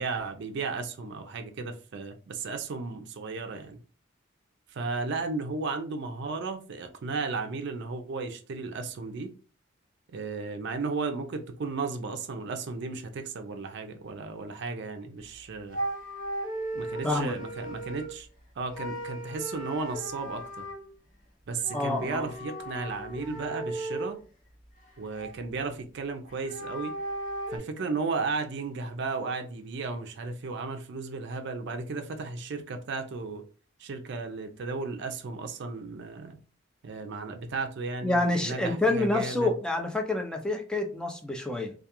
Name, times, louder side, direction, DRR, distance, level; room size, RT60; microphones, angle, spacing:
voice 1, 0.0-3.8 4.7-9.3 10.1-15.8 16.7-18.3 18.6-20.7 21.5-24.2 25.0-27.0 27.5-33.4 33.8-36.4 36.8-39.5, right 4 dB, 60° right, 0.4 m, -34 dB
sound 1, 15.2-15.4 15.7-18.3 18.7-20.8 21.6-24.2 24.6-25.6 26.3-27.6, right 1 dB, 40° left, 0.7 m, -36 dB
voice 2, 17.0-17.3 21.7-22.3 38.0-41.7, left 2 dB, 5° left, 0.3 m, -27 dB
2.3 x 2.3 x 2.8 m
head